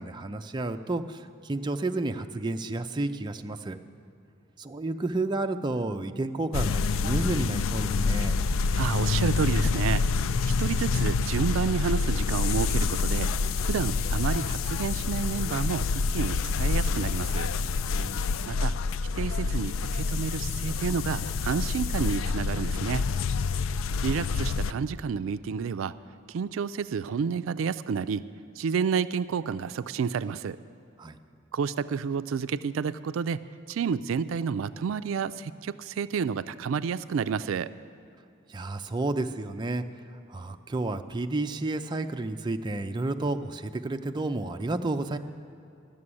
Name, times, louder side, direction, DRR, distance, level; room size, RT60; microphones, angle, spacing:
voice 1, 0.0-3.8 4.6-8.4 17.9-18.5 31.0-31.2 38.5-39.8 40.3-45.2, right 2 dB, 20° right, 6 dB, 0.4 m, -31 dB
sound 1, 6.5-24.7, left 4 dB, 80° left, 0.4 m, -27 dB
voice 2, 8.7-10.0 10.6-13.3 13.6-17.5 18.5-18.7 19.1-23.1 24.0-25.9 26.3-28.2 28.6-30.6 31.5-33.4 33.7-37.7, right 6 dB, 85° right, 14 dB, 0.4 m, -30 dB
12.5 x 6.9 x 9.7 m, 2.7 s
head